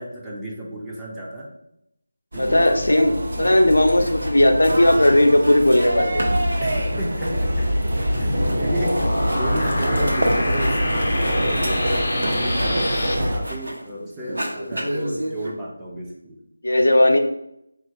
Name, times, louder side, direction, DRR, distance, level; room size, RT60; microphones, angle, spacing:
voice 1, 0.0-1.5 2.3-2.7 3.3-3.6 6.6-16.4, right 1 dB, 5° right, -6 dB, 0.4 m, -33 dB
sound 1, 2.3-13.4, equal, 60° right, 0.6 m, -24 dB
voice 2, 2.4-6.3 16.6-17.2, left 1 dB, 80° left, 4 dB, 0.5 m, -17 dB
sound 2, 3.7-4.4 4.6-5.9 6.2-13.9 14.2-15.5, right 1 dB, 85° right, 0.9 m, -33 dB
sound 3, 8.1-13.1, left 1 dB, 45° left, 0.7 m, -26 dB
3.6 x 2.4 x 2.8 m, 0.80 s
figure-of-eight pair, 165°, 0 cm